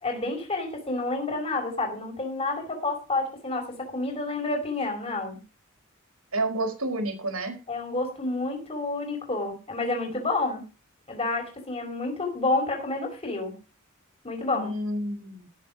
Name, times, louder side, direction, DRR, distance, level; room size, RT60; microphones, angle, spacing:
voice 1, 0.0-5.4 7.7-10.6 11.1-13.5 14.2-14.7, left 2 dB, 30° left, 3 dB, 4.9 m, -29 dB
voice 2, 6.3-7.6 14.5-15.5, right 1 dB, 85° right, 5 dB, 4.9 m, -29 dB
17.5 x 7.5 x 5.0 m, 0.32 s
head